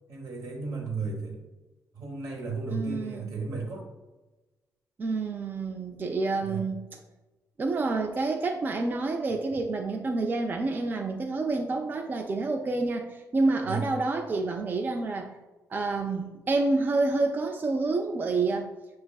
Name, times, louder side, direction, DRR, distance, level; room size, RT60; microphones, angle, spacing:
voice 1, 0.1-1.5 1.9-3.8 6.4-6.7 13.6-13.9, right 4 dB, 75° right, 1 dB, 0.9 m, -34 dB
voice 2, 2.7-3.3 5.0-6.8 7.6-15.3 15.7-18.7, right 3 dB, 30° right, 2 dB, 0.4 m, -28 dB
6.3 x 2.4 x 2.3 m, 1.1 s
cardioid pair, 90°, 6 cm